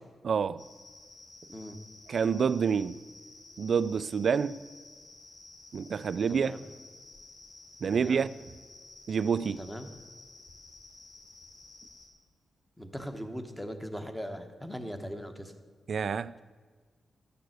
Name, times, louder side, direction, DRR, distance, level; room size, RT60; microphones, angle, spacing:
voice 1, 0.2-0.6 2.1-3.0 3.6-4.6 5.7-6.5 7.8-8.3 9.1-9.6 15.9-16.3, right 6 dB, 55° right, 0.3 m, -27 dB
sound 1, 0.6-12.1, left 2 dB, 80° left, 4.0 m, -53 dB
voice 2, 6.3-6.7 7.9-8.2 9.6-9.9 12.8-15.5, equal, 5° left, 1.1 m, -39 dB
12.5 x 6.8 x 7.9 m
wide cardioid pair, 135°, 0 cm